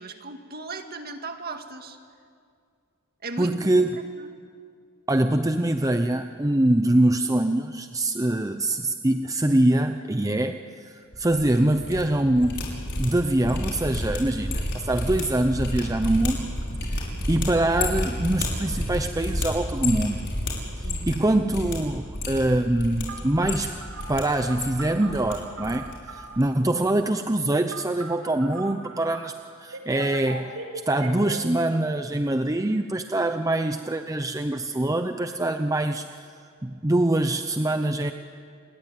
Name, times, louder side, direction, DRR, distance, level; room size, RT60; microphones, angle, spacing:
voice 1, 0.0-2.0 3.2-3.6 4.0-4.3 20.8-21.2, right 3 dB, 45° right, 6 dB, 2.1 m, -37 dB
voice 2, 3.4-3.9 5.1-12.7 13.0-16.5 16.8-20.3 20.8-23.7 24.1-30.6 30.9-36.3 36.6-38.1, right 1 dB, 15° right, 7 dB, 0.7 m, -24 dB
sound 1, 11.1-12.0 12.3-21.2 21.5-21.8 22.1-23.0 23.4-24.2 24.5-25.3 25.6-25.9 26.2-26.4, left 1 dB, 55° left, 6.5 m, -30 dB
Telephone, 23.1-26.4 27.7-29.2 29.7-31.3, right 4 dB, 80° right, 4.3 m, -39 dB
29.0 x 21.5 x 9.3 m, 2.2 s
head